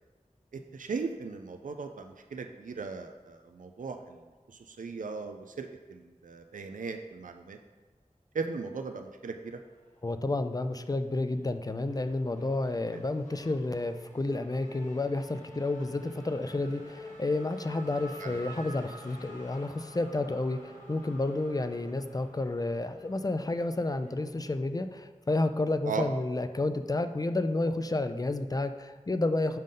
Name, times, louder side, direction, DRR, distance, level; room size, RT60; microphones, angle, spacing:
voice 1, 0.5-4.2 4.5-7.6 8.3-9.6 18.2-18.4 25.9-26.0, right 4 dB, 75° right, 6 dB, 0.4 m, -37 dB
Race car auto racing / Accelerating revving vroom, 9.5-10.5 10.8-24.5, left 1 dB, 70° left, 1.5 m, -49 dB
voice 2, 10.0-29.6, left 2 dB, 30° left, 9 dB, 0.4 m, -31 dB
5.5 x 5.1 x 3.8 m, 1.3 s
wide cardioid pair, 55°, 14 cm